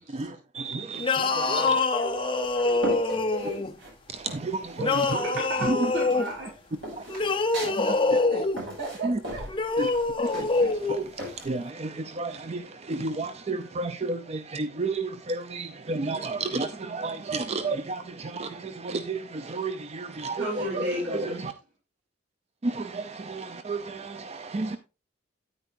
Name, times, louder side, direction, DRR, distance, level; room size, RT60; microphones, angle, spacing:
voice 1, 0.1-1.8 4.1-4.8 5.1-5.2 5.7-5.9 7.0-7.1 7.6-8.2 9.0-9.2 9.8-9.9 10.2-21.5 22.6-24.8, right 3 dB, 35° right, 0.5 m, -32 dB
sound 1, 1.0-3.7 4.8-6.3 7.1-8.6 9.5-11.0, left 3 dB, 25° left, 0.7 m, -25 dB
voice 2, 1.5-3.7 8.3-9.8, right 1 dB, 60° right, 2.6 m, -36 dB
sound 2, 2.1-3.9 4.3-5.1 5.4-11.4, right 1 dB, 75° right, 5.7 m, -38 dB
voice 3, 4.8-6.5 7.0-7.1 20.4-21.5, right 1 dB, 90° right, 4.2 m, -33 dB
9.3 x 9.2 x 2.6 m
head